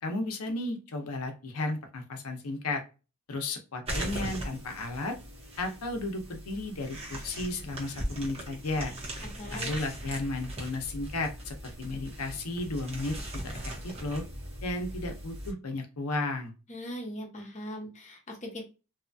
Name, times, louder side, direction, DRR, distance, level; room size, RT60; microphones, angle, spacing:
voice 1, 0.0-2.8 3.3-5.2 5.6-8.9 9.5-13.2 13.4-14.2 14.6-16.5, left 2 dB, 80° left, 4 dB, 0.7 m, -34 dB
sound 1, 3.8-15.5, right 1 dB, 25° right, 1.0 m, -39 dB
voice 2, 9.4-9.7 16.7-18.6, equal, 35° left, 0 dB, 0.9 m, -40 dB
2.7 x 2.3 x 2.6 m, 0.30 s
head